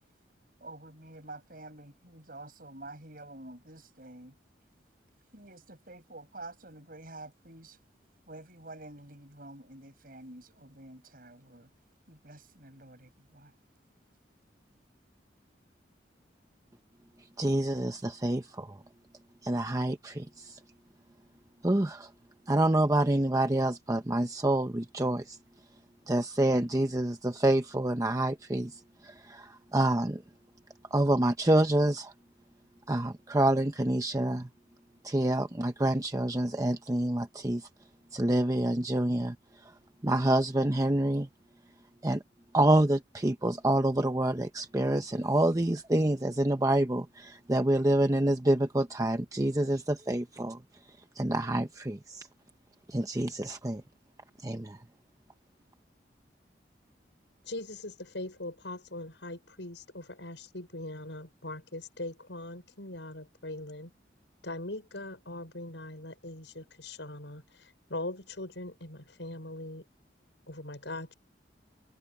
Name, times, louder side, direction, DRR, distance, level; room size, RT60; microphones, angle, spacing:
voice 1, 0.6-4.4 5.3-7.8 8.3-11.7 12.1-13.5, right 2 dB, 50° right, 7.2 m, -48 dB
voice 2, 17.4-18.8 19.4-20.6 21.6-22.1 22.5-25.4 26.1-30.2 30.9-32.1 32.9-34.5 35.0-37.7 38.1-39.7 40.0-41.3 42.0-42.2 42.5-50.6 51.1-52.3 52.9-53.8 54.4-54.8, right 1 dB, 20° right, 0.8 m, -27 dB
voice 3, 57.4-63.9 64.4-69.8 70.5-71.1, left 2 dB, 90° left, 6.1 m, -41 dB
head